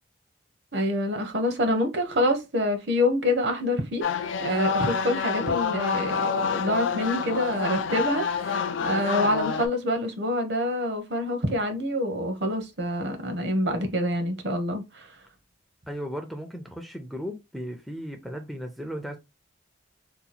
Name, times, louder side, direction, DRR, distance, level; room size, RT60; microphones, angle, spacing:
voice 1, 0.7-4.1 4.4-15.1, left 1 dB, 60° right, 0.8 m, -26 dB
sound 1, 4.0-9.7, left 6 dB, 85° left, 0.4 m, -27 dB
voice 2, 15.9-19.2, equal, ahead, 0.4 m, -36 dB
2.8 x 2.3 x 4.0 m
head